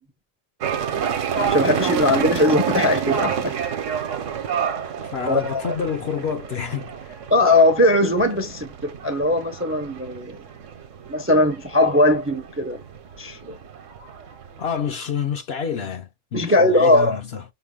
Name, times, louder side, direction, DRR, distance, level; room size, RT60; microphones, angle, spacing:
sound 1, 0.6-14.9, right 8 dB, 70° right, 1.1 m, -29 dB
voice 1, 1.4-3.6 5.3-5.7 7.3-10.4 11.1-12.8 13.2-13.6 16.3-17.2, left 1 dB, 15° right, 0.4 m, -19 dB
voice 2, 5.0-7.2 14.6-17.4, left 7 dB, 60° left, 0.7 m, -28 dB
5.7 x 2.2 x 3.5 m
omnidirectional pair, 1.4 m